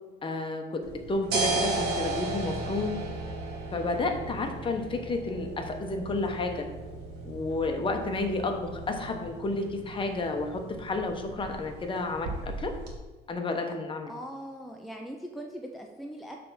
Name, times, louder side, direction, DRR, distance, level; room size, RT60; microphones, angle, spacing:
voice 1, 0.2-0.8 1.1-3.0 3.7-6.7 7.2-12.7 13.3-14.1, left 2 dB, 30° left, 4 dB, 1.0 m, -31 dB
sound 1, 0.8-12.9, right 3 dB, 80° right, 1.5 m, -36 dB
voice 2, 14.1-16.4, equal, ahead, 1 dB, 0.5 m, -40 dB
7.5 x 3.4 x 6.2 m, 1.2 s
cardioid pair, 110°, 17 cm